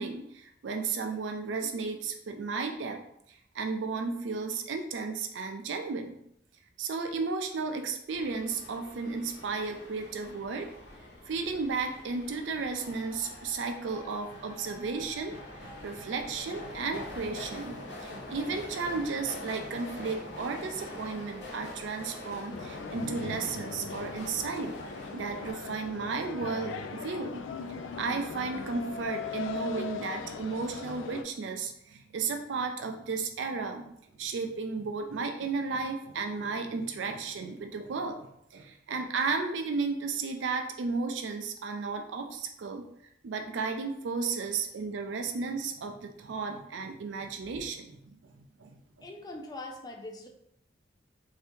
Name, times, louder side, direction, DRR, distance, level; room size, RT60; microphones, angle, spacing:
voice 1, 0.0-3.0 3.3-6.2 6.8-10.7 11.3-24.7 25.1-27.5 28.0-33.9 34.2-42.9 43.2-49.1, right 4 dB, 75° right, 4 dB, 0.4 m, -34 dB
sound 1, 8.1-25.5, left 1 dB, 70° left, 0.9 m, -44 dB
sound 2, 22.5-31.2, left 5 dB, 90° left, 0.3 m, -39 dB
voice 2, 49.0-50.3, left 2 dB, 20° left, 1 dB, 0.4 m, -42 dB
2.7 x 2.7 x 3.5 m, 0.74 s
head